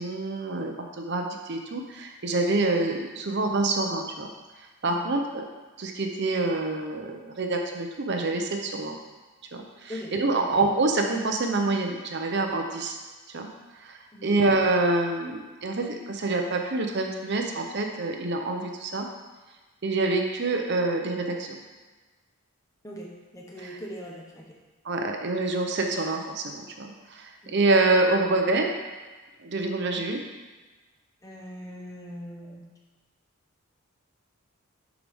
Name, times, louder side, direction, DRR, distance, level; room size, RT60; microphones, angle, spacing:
voice 1, 0.0-4.3 4.8-5.4 5.8-9.0 9.5-13.0 13.3-13.5 13.8-19.1 19.8-21.6 23.6-23.8 24.8-28.7 29.4-30.2, right 2 dB, 50° right, 3 dB, 0.7 m, -26 dB
voice 2, 9.9-10.5 14.1-14.4 22.8-24.6 27.4-27.6 31.2-32.6, equal, 15° left, -2 dB, 1.0 m, -41 dB
11.0 x 4.9 x 3.6 m, 1.3 s
head